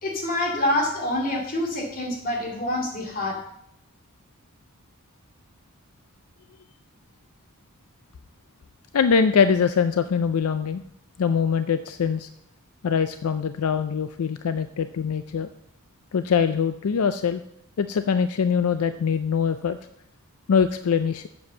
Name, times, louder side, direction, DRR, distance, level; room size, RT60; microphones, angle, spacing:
voice 1, 0.0-3.4, left 1 dB, 40° left, 1 dB, 2.4 m, -26 dB
voice 2, 8.9-10.8 11.2-12.3 12.8-15.5 16.1-17.4 17.8-19.8 20.5-21.3, left 6 dB, 80° left, 11 dB, 0.4 m, -23 dB
7.9 x 7.1 x 6.8 m, 0.76 s
head